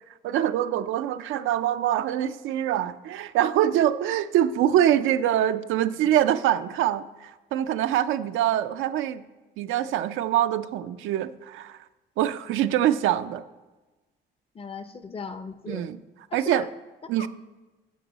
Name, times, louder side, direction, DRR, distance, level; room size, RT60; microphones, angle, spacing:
voice 1, 0.2-9.2 9.6-11.8 12.2-13.4 15.7-16.0 16.3-16.7 17.1-17.3, right 11 dB, 85° right, 11 dB, 0.4 m, -24 dB
voice 2, 14.5-15.9 16.3-16.7 17.2-17.3, left 5 dB, 30° left, 11 dB, 0.6 m, -37 dB
11.0 x 6.2 x 4.0 m, 1.2 s
cardioid pair, 90°, 20 cm